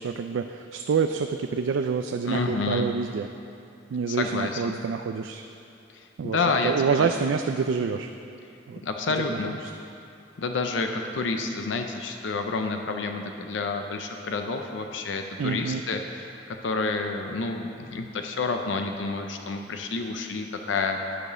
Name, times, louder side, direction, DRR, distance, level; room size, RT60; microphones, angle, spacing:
voice 1, 0.0-3.3 3.9-5.4 6.2-6.4 6.6-8.1 8.7-8.8 9.3-9.7 15.4-15.8, right 5 dB, 80° right, 6 dB, 0.3 m, -27 dB
voice 2, 2.3-2.9 4.1-4.8 5.9-7.1 8.8-9.6 10.4-16.3 16.6-21.0, left 3 dB, 70° left, 4 dB, 0.6 m, -29 dB
9.8 x 4.9 x 6.6 m, 2.6 s
head